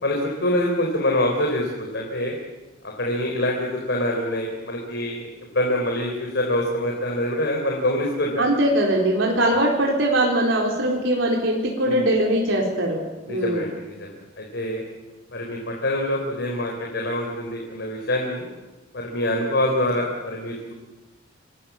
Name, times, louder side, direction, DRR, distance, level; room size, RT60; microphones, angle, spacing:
voice 1, 0.0-2.3 3.0-5.2 5.5-8.4 9.5-9.6 11.8-12.1 13.3-14.8 15.3-18.5 18.9-20.7, left 1 dB, 60° left, 0 dB, 4.2 m, -25 dB
voice 2, 8.4-13.6, right 1 dB, 75° right, -1 dB, 4.3 m, -21 dB
27.0 x 21.5 x 7.3 m, 1.2 s
head